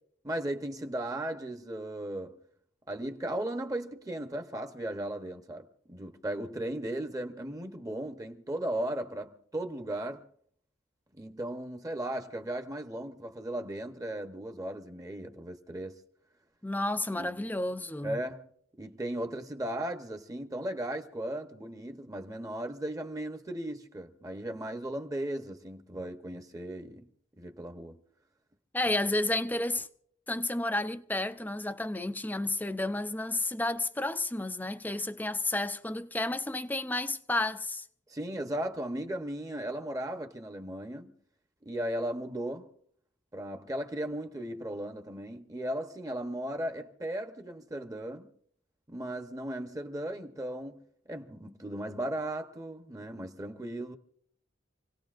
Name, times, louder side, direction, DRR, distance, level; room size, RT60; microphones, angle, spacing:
voice 1, 0.2-2.4 2.9-10.3 11.1-15.9 17.2-17.3 18.0-18.5 18.8-27.1 27.4-28.0 38.1-41.1 41.6-42.7 43.3-48.3 48.9-54.0, right 1 dB, 20° right, 0.9 m, -36 dB
voice 2, 16.6-18.2 28.7-29.9 30.3-37.8, left 2 dB, 10° left, 0.5 m, -31 dB
28.0 x 17.5 x 2.5 m
head